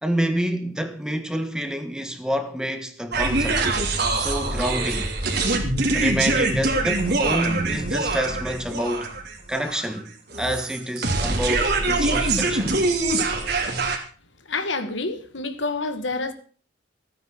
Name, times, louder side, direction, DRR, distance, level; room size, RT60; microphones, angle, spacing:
voice 1, 0.0-3.7 4.1-5.1 5.9-9.1 9.5-10.1 10.4-12.7, equal, 5° right, 1.5 m, -27 dB
sound 1, 3.1-14.0, right 3 dB, 55° right, 3.1 m, -24 dB
voice 2, 14.5-16.3, left 3 dB, 70° left, 1.7 m, -28 dB
16.0 x 9.6 x 6.6 m
head